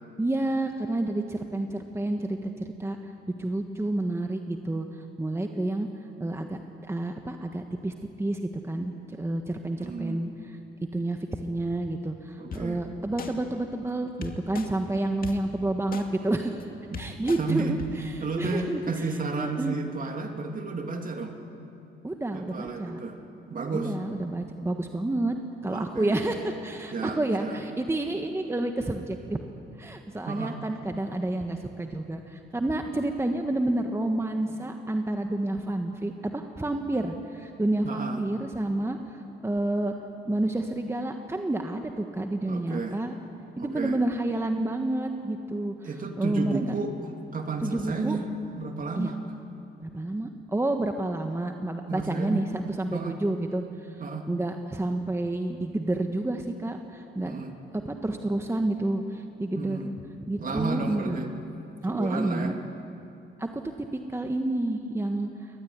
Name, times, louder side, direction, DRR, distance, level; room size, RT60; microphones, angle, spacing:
voice 1, 0.2-3.0 3.4-4.9 5.2-5.9 6.2-6.6 6.9-10.6 10.9-16.6 17.0-19.0 19.4-19.7 22.0-23.0 23.7-25.4 25.6-29.4 29.8-39.9 40.3-43.2 43.6-45.9 46.2-46.6 47.6-48.2 49.0-49.1 49.8-54.0 54.3-57.3 57.8-59.9 60.3-61.2 61.8-62.5 63.4-65.6, right 2 dB, 15° right, 4 dB, 1.4 m, -29 dB
voice 2, 9.8-10.2 12.4-12.8 16.9-17.0 17.4-17.8 18.2-21.3 22.3-23.2 23.5-23.9 25.7-26.2 26.9-27.6 30.3-30.6 37.8-38.2 42.5-43.0 43.6-44.0 45.8-48.3 48.5-49.2 51.9-52.4 52.9-53.2 54.0-54.3 57.2-57.5 59.5-59.9 60.4-61.3 61.9-62.6, right 4 dB, 45° right, 4 dB, 2.6 m, -32 dB
sound 1, 12.5-12.6 13.2-13.3 14.2-14.7 15.2-15.3 15.9-16.0 16.6-16.7 16.9-17.4 17.8-17.9, left 6 dB, 45° left, 2.3 m, -36 dB
22.5 x 19.5 x 9.6 m, 2.7 s
cardioid pair, 90°, 20 cm